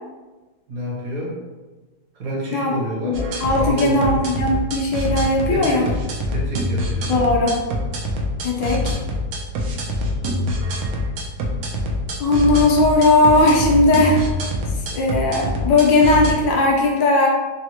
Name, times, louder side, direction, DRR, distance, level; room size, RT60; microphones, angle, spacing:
voice 1, 0.7-1.4 2.1-3.3 3.6-4.2 5.5-6.0 6.3-7.2 8.6-8.8 9.7-9.9, right 1 dB, 65° right, -4 dB, 1.2 m, -29 dB
voice 2, 3.0-5.8 7.1-7.6 8.4-9.0 12.2-14.2 14.9-17.3, left 2 dB, 75° left, -1 dB, 1.2 m, -17 dB
sound 1, 3.1-16.3, left 1 dB, 80° right, 0.8 m, -25 dB
4.0 x 2.0 x 2.8 m, 1.2 s
omnidirectional pair, 2.1 m